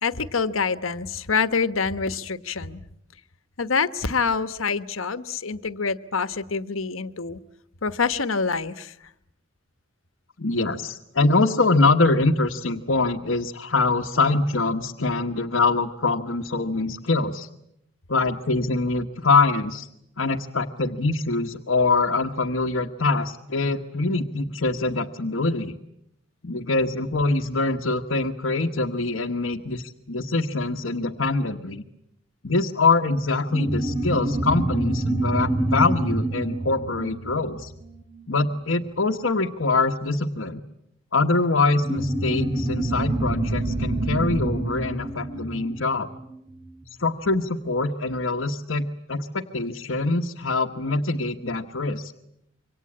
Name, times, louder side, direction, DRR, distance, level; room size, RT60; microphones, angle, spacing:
voice 1, 0.0-2.8 3.6-7.4 7.8-8.9, left 5 dB, 85° left, 12 dB, 1.2 m, -26 dB
voice 2, 10.4-17.5 18.1-19.9 20.2-25.7 26.4-31.8 32.4-37.7 38.3-40.6 41.1-46.1 47.0-52.1, left 3 dB, 70° left, 2 dB, 1.3 m, -24 dB
sound 1, 33.5-38.4 41.8-46.7, right 1 dB, 30° right, 4.9 m, -27 dB
27.0 x 24.5 x 8.7 m, 0.79 s
head